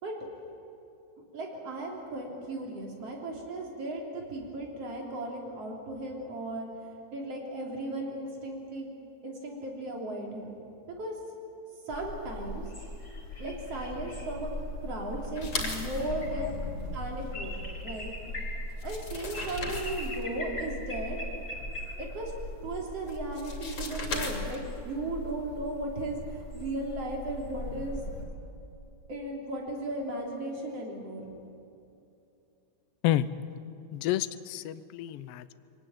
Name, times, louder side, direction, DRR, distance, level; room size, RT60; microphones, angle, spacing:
voice 1, 1.3-8.9 9.2-10.6 11.0-11.1 11.9-12.7 13.4-14.5 14.8-16.6 16.9-18.1 18.8-21.2 22.0-22.3 22.6-28.0 29.1-31.2, right 2 dB, 55° right, 0 dB, 4.3 m, -36 dB
sound 1, 11.9-28.2, left 1 dB, 20° left, 3.6 m, -39 dB
sound 2, 15.3-16.1 18.3-18.4 18.7-20.2 23.1-24.8, left 3 dB, 45° left, 3.6 m, -36 dB
voice 2, 33.9-35.5, left 13 dB, 75° left, 13 dB, 1.4 m, -29 dB
23.5 x 18.5 x 9.2 m, 2.9 s
omnidirectional pair, 3.3 m